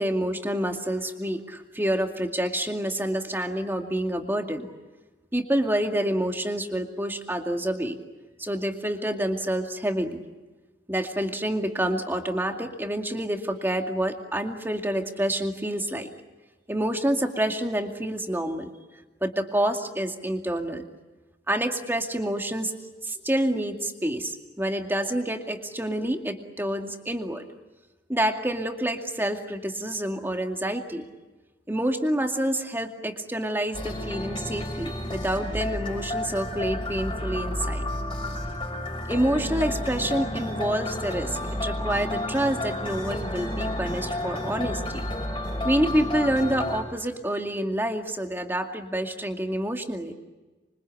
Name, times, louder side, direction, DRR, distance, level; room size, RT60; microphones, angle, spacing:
voice 1, 0.0-4.7 5.3-8.0 8.4-10.2 10.9-16.1 16.7-18.7 19.2-20.8 21.5-22.7 23.0-27.4 28.1-31.1 31.7-37.8 39.1-45.0 45.6-50.1, right 1 dB, 15° right, 4 dB, 2.3 m, -28 dB
sound 1, 33.7-46.8, left 1 dB, 30° left, 5.9 m, -31 dB
26.5 x 24.5 x 8.4 m, 1.2 s
head